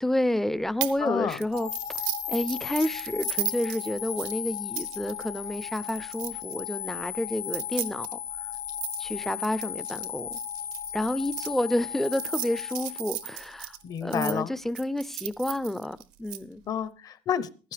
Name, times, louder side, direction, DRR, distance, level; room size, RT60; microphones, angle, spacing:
voice 1, 0.0-1.7 2.3-8.2 9.0-10.4 10.9-13.8 14.0-16.6, left 1 dB, 5° left, 0.5 m, -30 dB
handling quarters, 0.8-1.0 1.3-6.6 7.4-11.5 12.0-14.3 14.8-16.4, right 15 dB, 85° right, 1.0 m, -36 dB
voice 2, 1.0-1.4 13.8-14.5 16.7-17.7, left 8 dB, 40° left, 0.8 m, -30 dB
sound 1, 1.5-13.7, left 11 dB, 70° left, 1.6 m, -36 dB
15.5 x 11.5 x 3.3 m
cardioid pair, 120°, 9 cm